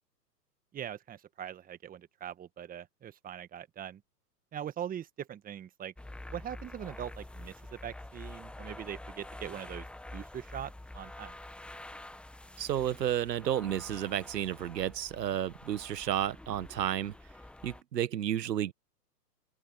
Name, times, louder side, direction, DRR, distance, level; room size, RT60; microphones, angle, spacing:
voice 1, 0.7-4.0 4.5-5.9 6.3-9.9 10.1-11.4, right 10 dB, 15° right, 1.5 m, -42 dB
sound 1, 6.0-17.8, left 1 dB, ahead, 1.1 m, -47 dB
voice 2, 12.6-17.1 17.6-18.7, right 11 dB, 75° right, 1.4 m, -32 dB
open air
hypercardioid pair, 125°, 50 cm